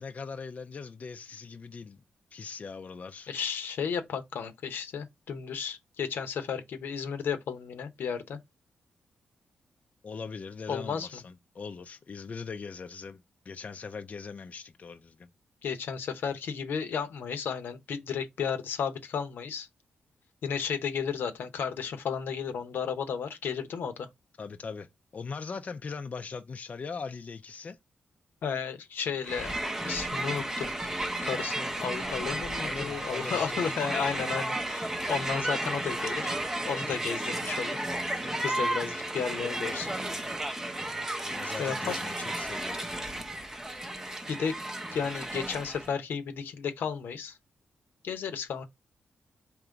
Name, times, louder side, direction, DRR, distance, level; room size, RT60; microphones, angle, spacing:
voice 1, 0.0-2.0 2.3-3.3 10.0-15.3 24.4-24.9 25.1-27.8 32.6-33.7 41.2-42.9, left 5 dB, 45° left, 0.4 m, -40 dB
voice 2, 3.3-8.4 10.7-11.1 15.6-19.7 20.4-24.1 28.4-29.5 29.8-30.8 31.2-36.4 36.6-37.8 38.4-39.9 41.6-42.0 44.3-44.5 44.9-47.4 48.0-48.7, left 6 dB, 80° left, 0.8 m, -33 dB
Crowd, 29.2-45.9, right 1 dB, 15° right, 0.6 m, -33 dB
3.8 x 3.0 x 4.6 m
cardioid pair, 80°, 3 cm